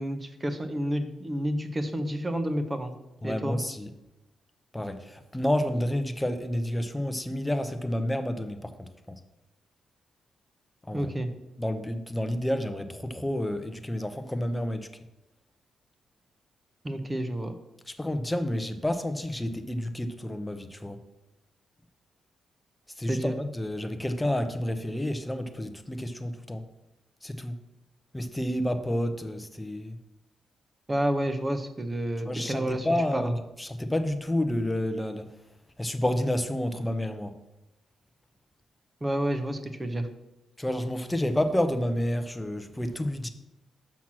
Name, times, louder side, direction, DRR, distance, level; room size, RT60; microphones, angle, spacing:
voice 1, 0.0-2.9 3.2-3.6 10.9-11.3 16.8-17.5 23.1-23.3 30.9-33.3 39.0-40.1, right 1 dB, 20° right, 9 dB, 0.9 m, -30 dB
voice 2, 3.2-3.9 4.7-8.9 10.9-11.1 11.6-14.9 17.9-21.0 23.0-26.6 27.2-27.6 28.1-30.0 32.2-35.3 35.8-37.4 40.6-43.3, left 1 dB, 10° left, 8 dB, 0.7 m, -30 dB
6.0 x 5.9 x 6.0 m, 0.93 s
cardioid pair, 95°, 0 cm